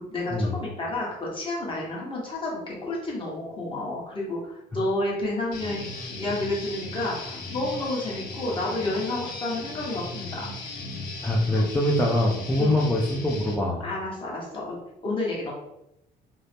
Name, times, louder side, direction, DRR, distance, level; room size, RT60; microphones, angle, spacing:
voice 1, 0.1-10.4 11.5-11.6 12.6-12.8 13.8-14.8 15.0-15.5, left 2 dB, 30° left, -4 dB, 1.1 m, -30 dB
Guitar, 5.5-13.5, left 2 dB, 70° left, 0.7 m, -37 dB
voice 2, 11.2-13.8, left 1 dB, 10° left, -4 dB, 0.4 m, -23 dB
2.6 x 2.0 x 3.2 m, 0.83 s
cardioid pair, 110°, 17 cm